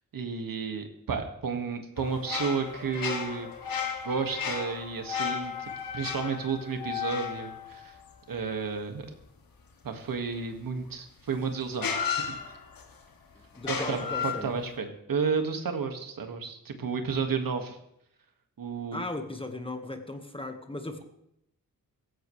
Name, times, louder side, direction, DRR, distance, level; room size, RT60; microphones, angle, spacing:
voice 1, 0.1-3.5 4.0-7.9 8.3-9.1 9.8-11.9 12.2-12.4 13.7-17.8 18.6-19.0, right 5 dB, 70° right, 5 dB, 2.0 m, -32 dB
sound 1, 2.0-8.6 10.9-11.0 11.8-13.0 13.6-14.7, left 7 dB, 75° left, 2.3 m, -34 dB
voice 2, 13.5-14.6 18.9-21.0, left 2 dB, 15° left, 6 dB, 1.6 m, -37 dB
17.0 x 15.0 x 3.3 m, 0.78 s
cardioid pair, 90°, 36 cm